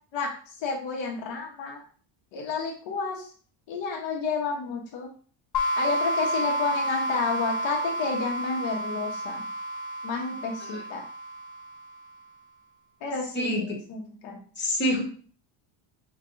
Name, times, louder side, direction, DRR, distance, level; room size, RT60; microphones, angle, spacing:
voice 1, 0.1-1.8 2.3-3.3 3.7-5.1 5.8-9.4 10.0-11.0 13.0-14.4, left 4 dB, 65° left, 0 dB, 1.2 m, -31 dB
sound 1, 5.5-12.1, right 1 dB, 40° left, 0.7 m, -30 dB
voice 2, 14.6-15.0, equal, 20° left, -1 dB, 1.4 m, -26 dB
5.7 x 2.6 x 2.6 m, 0.43 s
cardioid pair, 115°, 50 cm